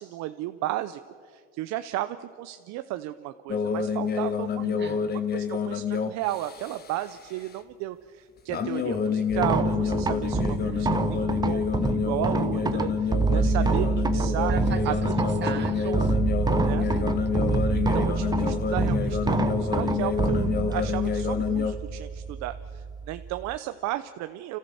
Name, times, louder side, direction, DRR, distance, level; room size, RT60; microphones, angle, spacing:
voice 1, 0.0-4.6 5.3-14.5 14.8-15.4 15.8-16.1 16.6-16.9 17.7-24.6, right 15 dB, 60° right, 11 dB, 0.7 m, -34 dB
sound 1, 3.5-7.0 8.5-21.7, left 6 dB, 30° left, 1.3 m, -28 dB
voice 2, 4.6-5.0 10.3-10.9 14.5-16.1 16.9-17.2 17.5-17.8, right 7 dB, 35° right, 8 dB, 1.7 m, -40 dB
sound 2, 9.3-23.6, right 4 dB, 15° right, 0.7 m, -27 dB
30.0 x 14.0 x 7.1 m, 2.2 s
cardioid pair, 125°, 31 cm